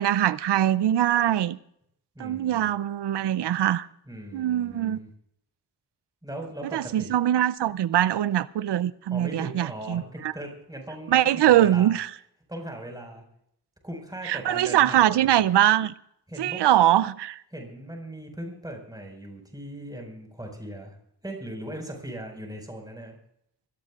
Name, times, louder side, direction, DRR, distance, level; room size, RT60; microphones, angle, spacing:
voice 1, 0.0-1.6 2.2-3.9 4.3-5.0 6.7-10.3 11.1-12.1 14.2-15.9 16.4-17.4, right 12 dB, 80° right, 0.5 m, -22 dB
voice 2, 2.1-2.7 4.1-5.1 6.2-7.1 9.1-11.9 12.5-13.2 13.8-15.3 16.3-16.6 17.5-21.0 21.2-23.2, right 1 dB, 10° right, 5.0 m, -39 dB
23.5 x 17.0 x 2.4 m
cardioid pair, 50°, 41 cm